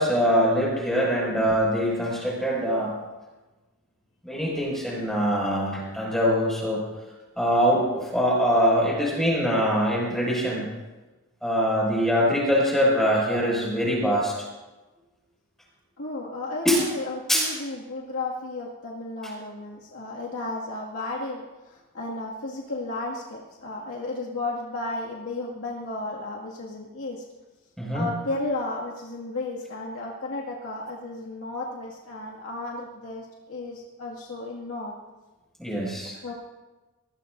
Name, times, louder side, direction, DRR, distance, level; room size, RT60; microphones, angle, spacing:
voice 1, 0.0-3.0 4.2-6.8 7.4-10.7 11.4-14.3 16.6-16.8 17.3-17.5 27.8-28.1 35.6-36.2, equal, ahead, -4 dB, 6.1 m, -23 dB
voice 2, 16.0-27.2 27.9-34.9 36.2-36.3, left 2 dB, 70° left, -3 dB, 2.2 m, -33 dB
23.5 x 20.5 x 2.7 m, 1.2 s
head